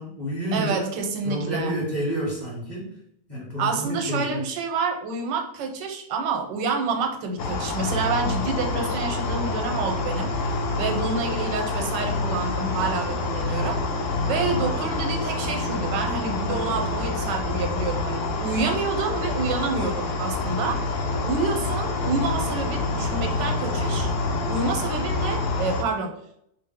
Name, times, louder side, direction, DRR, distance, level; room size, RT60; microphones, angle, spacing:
voice 1, 0.0-0.9 1.2-3.0 3.3-4.4, equal, 30° left, -6 dB, 1.2 m, -29 dB
voice 2, 0.5-1.7 3.6-13.8 14.2-20.8 21.2-24.1 24.5-26.2, right 4 dB, 85° right, 4 dB, 1.3 m, -28 dB
sound 1, 7.4-25.8, left 3 dB, 80° left, 0.6 m, -27 dB
4.5 x 2.0 x 3.5 m, 0.70 s
omnidirectional pair, 1.9 m